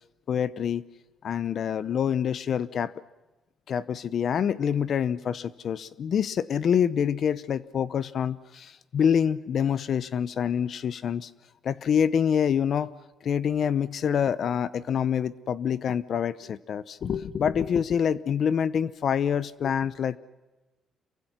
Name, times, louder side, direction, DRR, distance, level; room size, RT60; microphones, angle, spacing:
voice 1, 0.3-0.8 1.2-2.9 3.7-11.3 11.6-12.9 13.2-20.2, left 8 dB, 50° left, 16 dB, 0.7 m, -26 dB
28.0 x 24.0 x 6.1 m, 1.1 s
cardioid pair, 135°, 0 cm